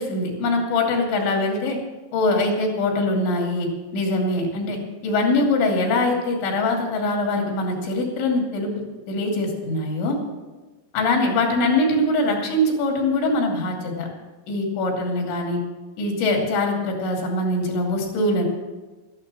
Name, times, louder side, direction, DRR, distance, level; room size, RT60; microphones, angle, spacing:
voice 1, 0.0-1.8 2.1-8.7 9.1-10.2 10.9-14.1 14.5-15.6 16.0-18.4, left 2 dB, 80° left, 0 dB, 5.0 m, -23 dB
13.5 x 12.0 x 6.2 m, 1.2 s
omnidirectional pair, 5.2 m